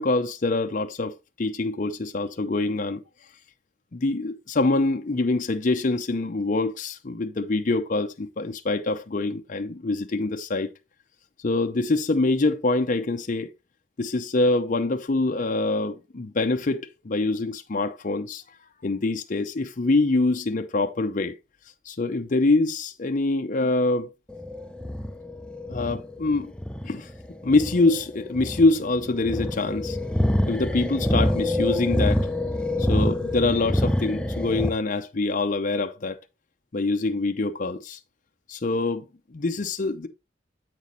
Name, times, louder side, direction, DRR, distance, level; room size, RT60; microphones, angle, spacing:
voice 1, 0.0-3.0 3.9-10.7 11.4-13.5 14.0-18.4 18.8-21.4 21.9-24.1 25.7-26.5 26.8-27.1 27.4-30.0 30.5-32.3 32.8-36.2 36.7-38.0 38.5-40.1, left 2 dB, 45° left, 0.6 m, -25 dB
sound 1, 24.3-34.7, left 1 dB, 5° left, 0.5 m, -26 dB
8.2 x 6.2 x 3.0 m
head